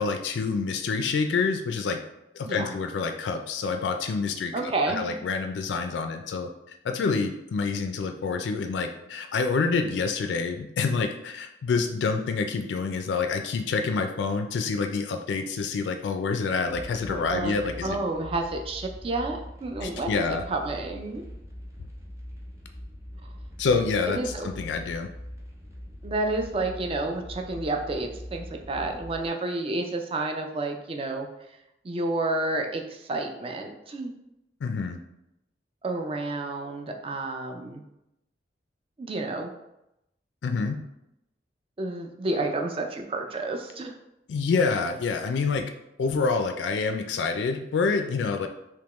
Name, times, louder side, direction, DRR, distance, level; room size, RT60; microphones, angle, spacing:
voice 1, 0.0-2.0 2.4-18.0 19.8-20.4 23.6-25.1 34.6-35.0 40.4-40.8 44.3-45.6 46.0-48.5, left 4 dB, 80° left, 6 dB, 0.3 m, -27 dB
voice 2, 4.5-5.1 17.1-17.5 17.8-21.2 23.2-23.3 24.1-24.5 26.0-31.3 31.8-34.1 35.8-37.8 39.0-39.5 41.8-43.9, right 2 dB, 30° right, 3 dB, 0.4 m, -30 dB
sound 1, 16.6-29.3, equal, 15° right, 0.8 m, -42 dB
3.5 x 2.9 x 3.0 m, 0.86 s
head